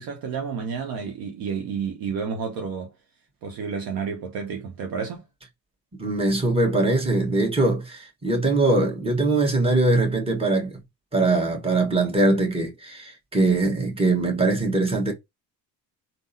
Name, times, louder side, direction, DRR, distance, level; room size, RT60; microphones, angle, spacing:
voice 1, 0.0-2.9 3.4-5.2, right 6 dB, 45° right, 0.8 m, -30 dB
voice 2, 6.0-10.8 11.1-15.1, right 2 dB, 10° right, 1.3 m, -22 dB
3.6 x 2.0 x 2.6 m
hypercardioid pair, 55°, 49 cm